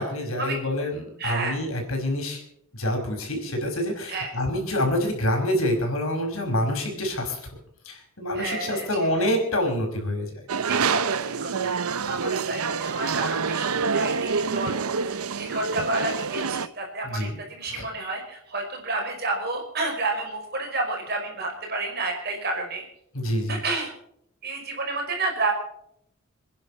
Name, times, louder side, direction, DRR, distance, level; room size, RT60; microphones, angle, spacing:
voice 1, 0.0-2.4 2.7-7.4 7.8-10.3 17.0-17.3 17.7-17.8 23.1-23.6, left 1 dB, 70° left, 3 dB, 5.2 m, -26 dB
voice 2, 1.2-1.6 4.1-4.3 8.3-8.9 9.2-9.3 10.6-11.7 12.0-22.8 23.5-23.9 24.4-25.5, right 2 dB, 45° right, 2 dB, 5.3 m, -30 dB
sound 1, 10.5-16.7, right 5 dB, 80° right, 0.7 m, -27 dB
27.5 x 10.5 x 4.3 m, 0.71 s
head